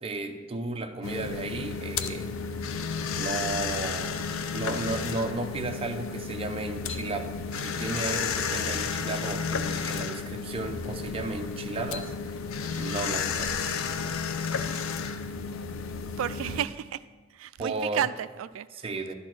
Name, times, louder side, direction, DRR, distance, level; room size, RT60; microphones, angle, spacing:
voice 1, 0.0-2.3 3.2-4.2 4.5-12.1 12.7-13.7 17.6-18.1 18.7-19.1, right 3 dB, 30° right, 4 dB, 0.6 m, -34 dB
sound 1, 1.0-16.7, left 5 dB, 90° left, 0.5 m, -32 dB
voice 2, 16.2-17.0 17.3-18.7, right 10 dB, 70° right, 15 dB, 0.3 m, -31 dB
11.0 x 4.2 x 6.0 m, 1.4 s
head